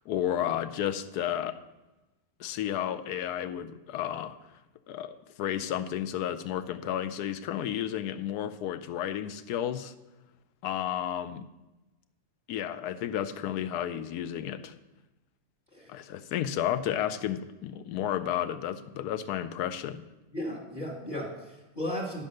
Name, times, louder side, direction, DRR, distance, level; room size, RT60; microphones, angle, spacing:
voice 1, 0.0-1.6 2.4-4.4 4.9-9.9 10.6-11.5 12.5-14.8 15.9-20.0, left 10 dB, 80° left, 12 dB, 1.1 m, -32 dB
voice 2, 20.3-22.3, left 1 dB, 30° left, -2 dB, 1.5 m, -35 dB
10.5 x 5.4 x 6.4 m, 1.0 s
omnidirectional pair, 1.7 m